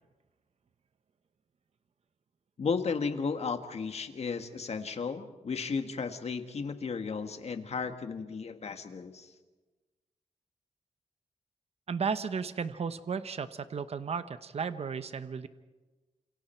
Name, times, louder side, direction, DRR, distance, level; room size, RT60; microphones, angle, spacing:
voice 1, 2.6-9.3, left 5 dB, 55° left, 7 dB, 1.7 m, -34 dB
voice 2, 11.9-15.5, right 6 dB, 55° right, 12 dB, 0.9 m, -34 dB
29.5 x 27.0 x 4.5 m, 1.2 s
wide cardioid pair, 130°, 13 cm